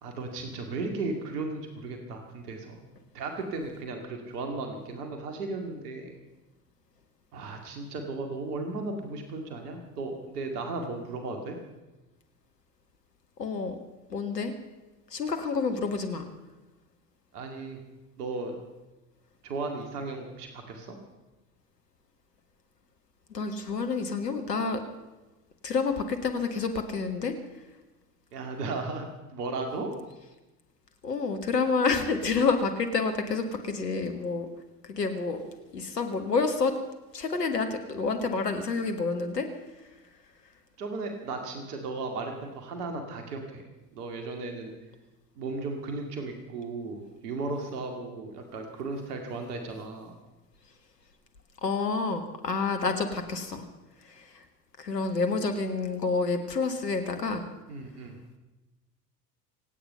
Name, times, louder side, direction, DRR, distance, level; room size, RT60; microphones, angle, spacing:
voice 1, 0.0-2.8 3.1-6.2 7.3-11.6 17.3-17.8 18.2-18.6 19.4-21.0 28.3-29.9 40.8-44.7 45.4-50.2 57.7-58.2, right 3 dB, 70° right, 4 dB, 2.3 m, -35 dB
voice 2, 13.4-13.8 14.1-14.5 15.1-16.2 23.3-24.8 25.6-27.3 31.0-34.5 34.9-35.4 35.7-36.7 37.1-39.5 51.6-53.7 54.0-54.4 54.8-57.5, left 4 dB, 85° left, 6 dB, 1.8 m, -28 dB
26.0 x 9.2 x 5.6 m, 1.1 s
figure-of-eight pair, 70°, 48 cm